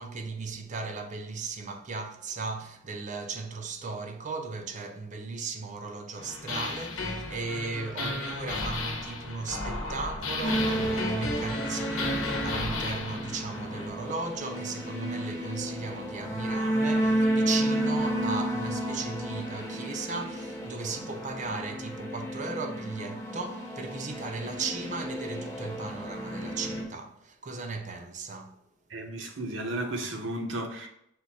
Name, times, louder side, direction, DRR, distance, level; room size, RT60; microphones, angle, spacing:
voice 1, 0.0-28.6, right 4 dB, 35° right, 0.5 m, -36 dB
sound 1, 6.2-13.9, left 2 dB, 85° left, 0.9 m, -33 dB
sound 2, 10.4-26.8, right 1 dB, 15° left, 0.7 m, -32 dB
voice 2, 28.9-30.9, right 1 dB, 65° right, 0.9 m, -34 dB
6.1 x 2.2 x 4.0 m
head